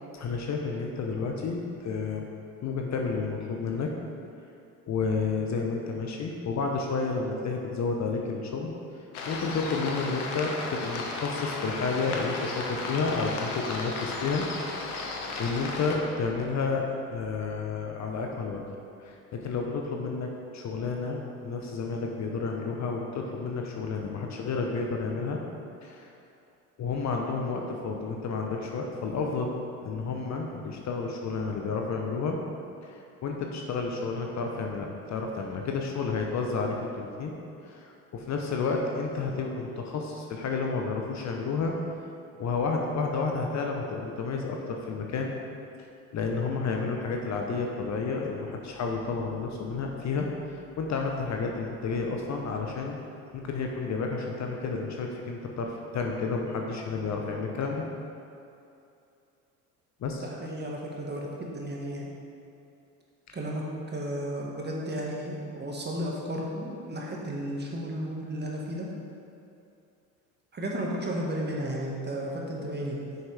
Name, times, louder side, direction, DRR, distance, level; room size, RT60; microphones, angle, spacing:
voice 1, 0.1-2.2 2.6-3.9 4.9-14.4 14.9-16.8 17.1-18.6 19.0-25.4 25.8-26.2 26.8-32.4 32.8-37.3 37.6-41.7 42.4-45.3 45.8-53.0 53.3-57.8 60.0-60.3, left 4 dB, 40° left, 1 dB, 1.0 m, -31 dB
Morning-Shower, 9.1-16.0, left 3 dB, 80° left, 1.2 m, -35 dB
voice 2, 60.4-61.3 61.5-62.1 63.3-68.9 70.5-73.0, equal, 25° right, -2 dB, 1.7 m, -33 dB
9.0 x 6.5 x 3.5 m, 2.7 s
hypercardioid pair, 70°, 43 cm